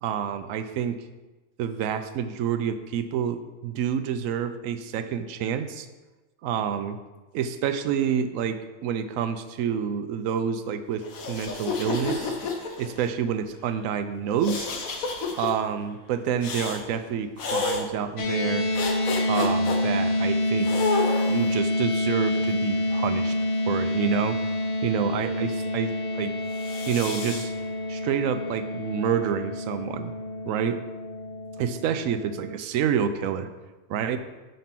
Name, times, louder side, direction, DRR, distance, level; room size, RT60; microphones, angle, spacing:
voice 1, 0.0-1.0 1.6-5.9 6.4-7.0 7.3-12.3 12.8-14.7 15.3-18.7 19.2-20.7 21.3-23.4 23.6-24.4 24.8-26.3 26.9-27.5 27.9-30.1 30.5-30.8 31.6-33.5 33.9-34.2, right 8 dB, 75° right, 10 dB, 0.9 m, -28 dB
sound 1, 11.0-13.1 14.4-15.5 16.4-16.8 17.4-17.8 18.7-19.8 20.6-21.5 22.3-23.4 26.5-27.4, left 4 dB, 80° left, 1.3 m, -30 dB
sound 2, 18.2-32.6, left 1 dB, 50° left, 0.3 m, -28 dB
5.4 x 5.2 x 5.8 m, 1.2 s
omnidirectional pair, 1.4 m